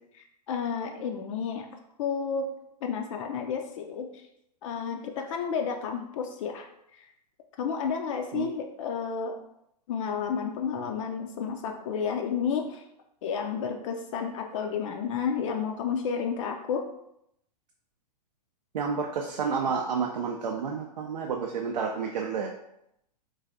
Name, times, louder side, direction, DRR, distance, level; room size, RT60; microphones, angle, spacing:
voice 1, 0.5-1.7 2.0-2.5 2.8-4.2 4.6-6.7 6.9-7.1 7.6-9.4 9.9-12.8 13.2-16.8, left 6 dB, 50° left, 3 dB, 0.4 m, -31 dB
voice 2, 18.7-22.5, right 5 dB, 85° right, 1 dB, 0.4 m, -30 dB
3.1 x 2.5 x 2.5 m, 0.78 s
hypercardioid pair, 115°, 21 cm